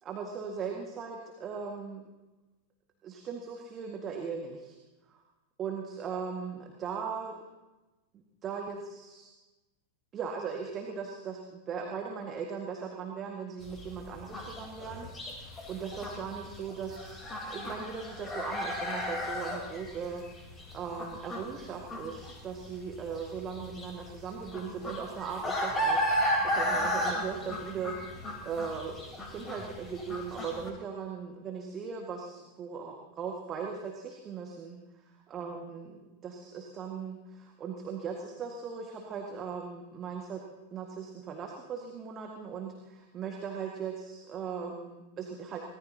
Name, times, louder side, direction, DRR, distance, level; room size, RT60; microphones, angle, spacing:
voice 1, 0.0-2.0 3.0-4.8 5.1-5.2 5.6-7.4 8.1-9.3 10.1-20.5 20.7-28.1 28.4-29.0 29.3-40.4 40.7-45.7, right 6 dB, 30° right, 1 dB, 1.8 m, -39 dB
sound 1, 13.6-30.7, equal, 15° left, 3.8 m, -34 dB
24.0 x 19.0 x 2.9 m, 1.1 s
figure-of-eight pair, 90°, 0 cm